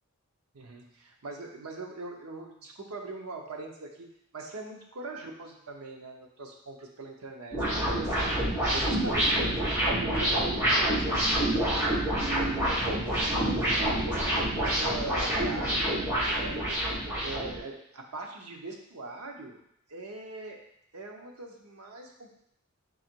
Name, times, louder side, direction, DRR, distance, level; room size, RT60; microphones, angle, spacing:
voice 1, 0.5-4.1 4.3-11.6 12.2-16.8 17.2-19.6 19.9-20.6 20.9-22.3, right 2 dB, 85° right, 1 dB, 0.8 m, -41 dB
sound 1, 7.5-17.6, right 1 dB, 15° right, 1.3 m, -27 dB
4.0 x 2.9 x 4.5 m, 0.71 s
head